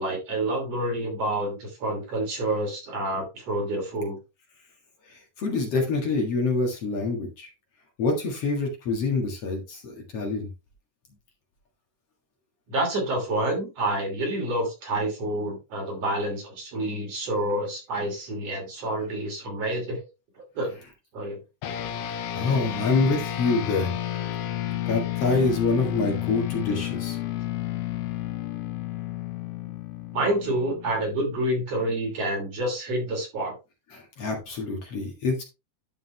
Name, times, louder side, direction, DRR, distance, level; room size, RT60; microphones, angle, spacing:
voice 1, 0.0-4.2 12.7-20.0 20.6-20.8 21.1-21.4 24.7-24.8 30.1-33.5, right 1 dB, 50° right, 1 dB, 3.9 m, -28 dB
voice 2, 5.1-7.5 8.0-10.5 22.3-24.2 24.9-27.2 33.9-35.4, left 3 dB, 55° left, 1 dB, 2.6 m, -26 dB
sound 1, 21.6-31.3, left 13 dB, 75° left, 1.5 m, -31 dB
11.5 x 5.2 x 3.3 m, 0.27 s
omnidirectional pair, 3.7 m